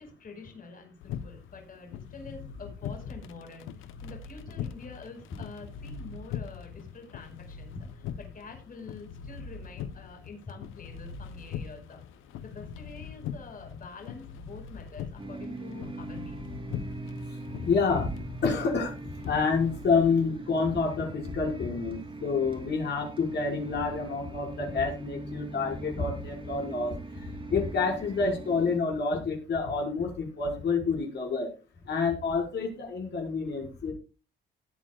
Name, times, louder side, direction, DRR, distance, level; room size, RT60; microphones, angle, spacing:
voice 1, 0.0-12.0 12.4-16.4, left 4 dB, 45° left, 3 dB, 5.1 m, -47 dB
sound 1, 1.0-20.1, left 8 dB, 85° left, 1.0 m, -41 dB
sound 2, 15.2-28.8, right 2 dB, 25° right, 3.1 m, -42 dB
voice 2, 17.6-18.9 19.2-26.9 27.2-31.5 31.9-33.9, left 4 dB, 60° left, 0 dB, 5.5 m, -28 dB
19.0 x 8.9 x 2.4 m, 0.33 s
cardioid pair, 90°, 20 cm